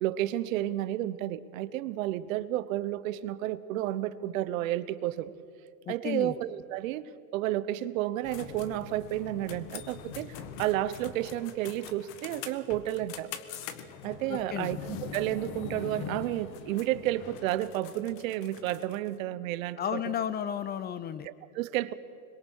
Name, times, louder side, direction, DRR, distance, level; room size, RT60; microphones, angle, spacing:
voice 1, 0.0-5.3 5.9-13.3 14.0-20.0 21.2-21.9, right 14 dB, 65° right, 15 dB, 1.1 m, -31 dB
voice 2, 5.9-6.3 14.3-14.7 19.8-21.3, left 9 dB, 20° left, 15 dB, 0.8 m, -33 dB
sound 1, 8.2-19.1, left 8 dB, 45° left, 1.7 m, -43 dB
25.5 x 22.5 x 6.5 m, 2.6 s
supercardioid pair, 130°, 43 cm